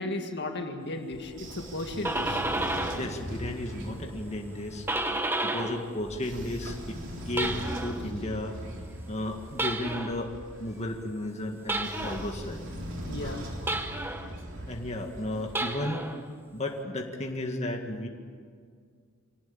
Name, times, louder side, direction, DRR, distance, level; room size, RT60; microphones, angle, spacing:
voice 1, 0.0-2.4 13.1-13.5, left 2 dB, 55° left, 4 dB, 2.0 m, -35 dB
Train / Sliding door, 1.1-5.1 6.0-10.8 11.7-15.5, equal, 60° right, 3.6 m, -40 dB
sound 1, 1.7-3.2 3.5-5.9 6.2-8.1 9.5-10.3 11.7-12.3 13.7-14.3 15.4-16.2, right 2 dB, 10° right, 1.2 m, -32 dB
voice 2, 3.0-4.9 5.4-7.0 7.3-8.8 9.1-10.3 10.6-12.7 14.7-16.1 16.5-18.1, left 1 dB, 35° left, 2 dB, 1.9 m, -34 dB
25.5 x 18.5 x 8.9 m, 2.1 s
head